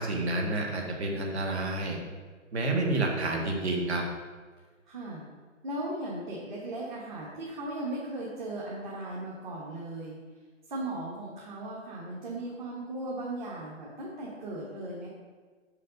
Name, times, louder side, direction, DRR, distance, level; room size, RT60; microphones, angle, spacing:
voice 1, 0.0-2.0 2.5-4.0, right 2 dB, 60° right, 1 dB, 1.7 m, -29 dB
voice 2, 4.9-5.2 5.6-10.2 10.7-15.1, right 1 dB, 40° right, -5 dB, 1.4 m, -37 dB
6.6 x 5.5 x 5.2 m, 1.4 s
hypercardioid pair, 170°, 38 cm